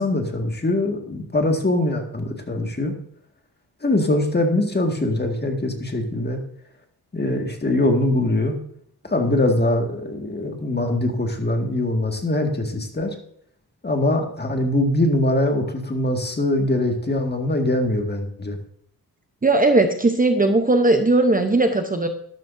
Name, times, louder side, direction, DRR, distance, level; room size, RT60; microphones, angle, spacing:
voice 1, 0.0-2.9 3.8-6.4 7.1-8.6 9.0-13.2 13.8-18.6, left 1 dB, 25° left, 3 dB, 1.9 m, -22 dB
voice 2, 19.4-22.1, right 2 dB, 20° right, 6 dB, 0.8 m, -18 dB
12.5 x 12.0 x 2.7 m, 0.65 s
wide cardioid pair, 115°, 38 cm